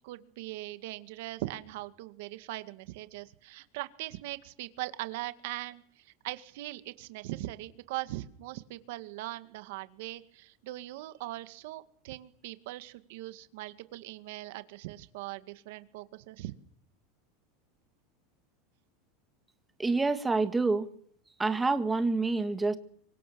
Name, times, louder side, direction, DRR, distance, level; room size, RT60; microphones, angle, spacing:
voice 1, 0.0-16.5, right 17 dB, 70° right, 11 dB, 2.1 m, -40 dB
voice 2, 19.8-20.9 21.4-22.8, right 3 dB, 10° right, 9 dB, 1.8 m, -27 dB
27.0 x 24.0 x 7.2 m, 0.65 s
supercardioid pair, 150°, 0 cm